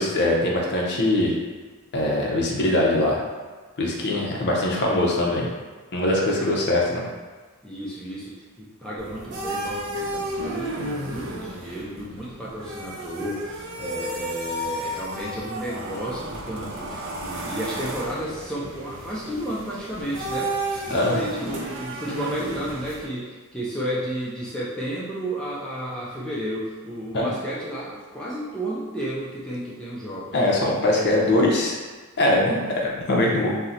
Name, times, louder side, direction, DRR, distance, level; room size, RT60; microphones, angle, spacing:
voice 1, 0.0-1.3 1.9-3.2 3.8-5.5 5.9-7.0 20.9-21.1 27.1-27.3 30.3-31.8 32.2-33.5, left 1 dB, 50° left, -2 dB, 0.6 m, -22 dB
voice 2, 3.8-4.8 6.0-6.5 7.6-30.4, right 1 dB, 5° left, -7 dB, 0.4 m, -33 dB
sound 1, 9.0-23.1, right 1 dB, 60° right, 0.5 m, -33 dB
2.7 x 2.0 x 3.7 m, 1.4 s
head